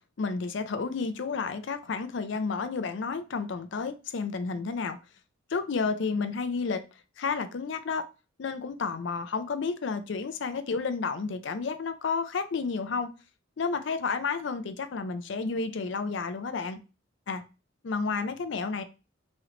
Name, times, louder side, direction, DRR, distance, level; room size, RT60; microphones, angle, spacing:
voice 1, 0.2-5.0 5.5-6.8 7.2-8.0 8.4-13.1 13.6-16.8 17.3-17.4 17.8-18.8, left 4 dB, 65° left, 0.4 m, -31 dB
3.1 x 3.0 x 3.7 m
head